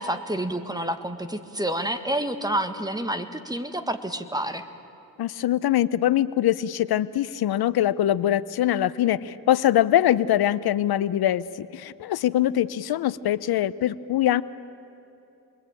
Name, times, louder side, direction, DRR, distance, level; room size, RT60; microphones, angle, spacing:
voice 1, 0.0-4.6, right 1 dB, 10° right, 8 dB, 1.7 m, -29 dB
voice 2, 5.2-14.4, left 12 dB, 75° left, 17 dB, 0.7 m, -23 dB
27.5 x 22.0 x 9.0 m, 2.9 s
cardioid pair, 85°, 38 cm